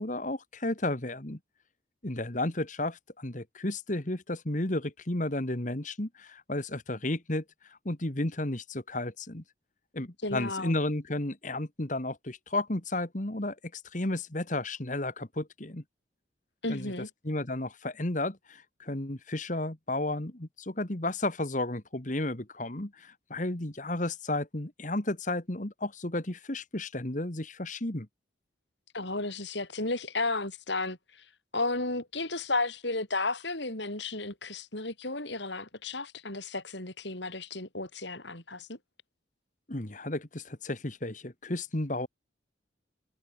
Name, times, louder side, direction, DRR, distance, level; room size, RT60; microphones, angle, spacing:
voice 1, 0.0-1.4 2.0-9.4 9.9-15.8 16.7-16.9 17.2-28.1 39.7-42.1, left 1 dB, 40° left, 1.9 m, -33 dB
voice 2, 10.2-10.7 16.6-17.1 28.9-31.0 31.5-38.8, left 2 dB, 70° left, 6.3 m, -33 dB
head